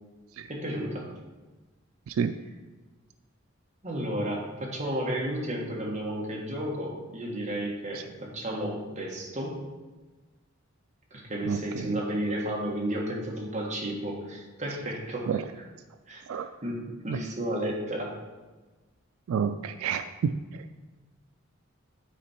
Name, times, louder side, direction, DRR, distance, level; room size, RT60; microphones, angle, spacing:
voice 1, 0.5-1.1 3.8-9.6 11.1-15.4 16.1-18.2, right 1 dB, 35° right, -2 dB, 1.5 m, -32 dB
voice 2, 2.1-2.4 7.9-8.1 11.5-12.0 15.3-15.4 16.3-16.5 17.1-17.2 19.3-20.6, right 6 dB, 85° right, 10 dB, 0.3 m, -30 dB
9.1 x 4.3 x 4.3 m, 1.2 s
head